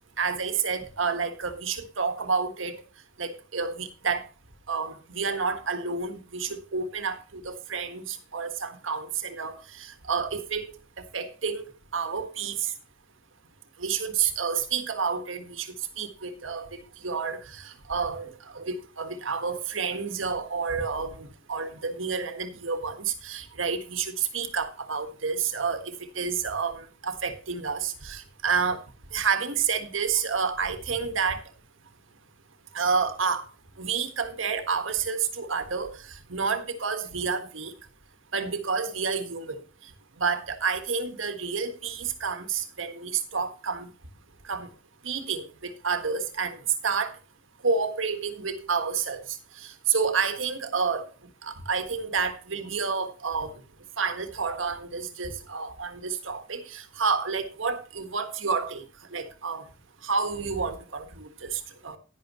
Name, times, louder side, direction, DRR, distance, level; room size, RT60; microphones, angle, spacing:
voice 1, 0.2-2.8 3.2-4.3 4.7-10.7 11.0-11.7 11.9-12.7 13.8-16.7 17.0-28.8 29.1-31.4 32.7-33.4 33.8-37.7 38.3-39.6 40.2-43.9 44.4-44.7 45.0-46.6 46.8-47.1 47.6-49.2 49.6-51.0 51.4-53.5 54.0-58.8 59.1-59.6 60.0-62.0, right 5 dB, 85° right, 1.6 m, -29 dB
11.0 x 10.5 x 3.0 m
head